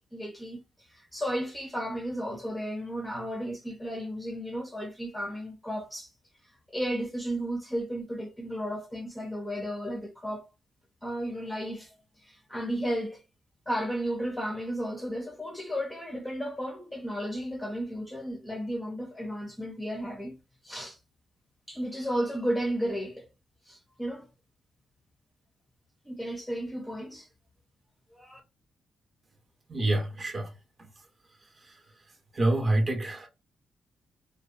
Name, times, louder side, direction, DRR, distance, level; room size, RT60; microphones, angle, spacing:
voice 1, 0.1-0.6 0.9-6.1 6.7-10.5 11.0-11.9 12.2-13.2 13.7-20.4 20.6-21.0 21.7-23.3 23.7-24.3 26.1-27.3 28.1-28.4, equal, 10° left, 0.6 m, -33 dB
voice 2, 29.7-30.5 30.8-30.9 31.6-31.8 32.3-33.3, right 2 dB, 30° right, 0.7 m, -27 dB
2.6 x 2.1 x 2.3 m
cardioid pair, 130°, 0 cm